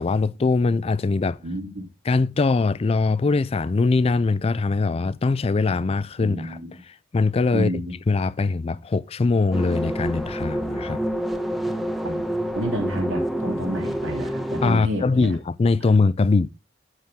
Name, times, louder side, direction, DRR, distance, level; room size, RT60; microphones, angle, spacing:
voice 1, 0.0-1.4 2.0-6.6 6.8-7.7 8.1-11.0 14.6-16.5, left 3 dB, 30° left, 0.4 m, -22 dB
voice 2, 1.4-1.8 6.2-6.7 7.5-7.9 12.0-12.2 12.5-15.3 15.8-15.9, equal, 85° right, 3.3 m, -30 dB
sound 1, 9.5-14.8, right 1 dB, ahead, 1.0 m, -27 dB
12.0 x 4.9 x 3.6 m
head